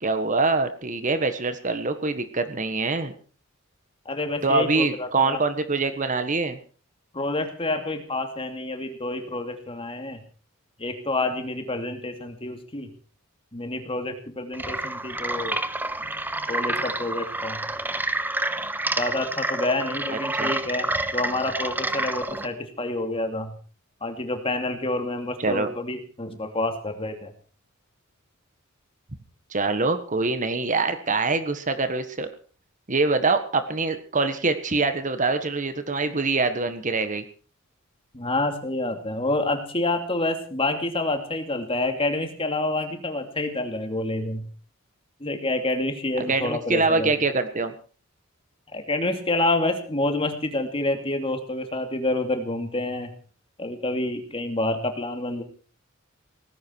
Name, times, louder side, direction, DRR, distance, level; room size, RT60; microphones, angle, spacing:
voice 1, 0.0-3.1 4.4-6.6 20.3-20.5 25.4-25.7 29.5-32.3 32.9-37.2 46.3-47.7, right 3 dB, 35° right, 9 dB, 1.5 m, -24 dB
voice 2, 4.1-5.4 7.1-10.2 10.8-12.9 13.5-15.6 16.5-17.6 19.0-23.5 24.0-27.3 38.1-44.5 45.2-47.1 48.7-53.1 53.6-55.4, left 2 dB, 25° left, 6 dB, 2.7 m, -28 dB
sound 1, 14.5-22.5, right 2 dB, 10° right, 1.0 m, -28 dB
18.5 x 15.5 x 4.7 m, 0.40 s
head